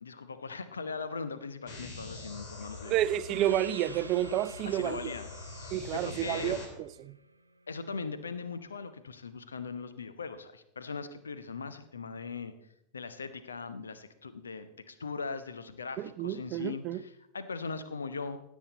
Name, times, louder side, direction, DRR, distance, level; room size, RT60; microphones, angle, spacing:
voice 1, 0.0-2.9 4.6-5.3 5.6-6.6 7.7-12.5 12.9-18.4, left 4 dB, 75° left, 0.8 m, -40 dB
sound 1, 1.7-6.7, left 3 dB, 50° left, 2.5 m, -44 dB
voice 2, 2.9-5.1 5.7-7.2 16.0-17.0, right 12 dB, 40° right, 0.4 m, -30 dB
Gong, 3.3-8.3, right 3 dB, 80° right, 0.7 m, -50 dB
16.0 x 8.5 x 4.0 m
figure-of-eight pair, 90°, 0 cm